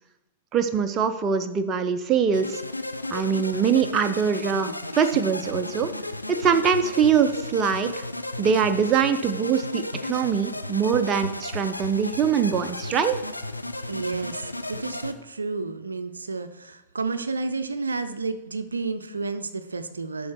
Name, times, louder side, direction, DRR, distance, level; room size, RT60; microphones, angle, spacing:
voice 1, 0.5-2.6 3.1-5.9 6.3-8.1 8.4-13.2, right 7 dB, 25° right, 8 dB, 0.6 m, -23 dB
sound 1, 2.3-15.1, left 2 dB, 90° left, 0.5 m, -34 dB
voice 2, 13.9-20.3, right 4 dB, 80° right, 10 dB, 0.5 m, -31 dB
11.5 x 3.9 x 4.6 m, 0.96 s
figure-of-eight pair, 100°, 0 cm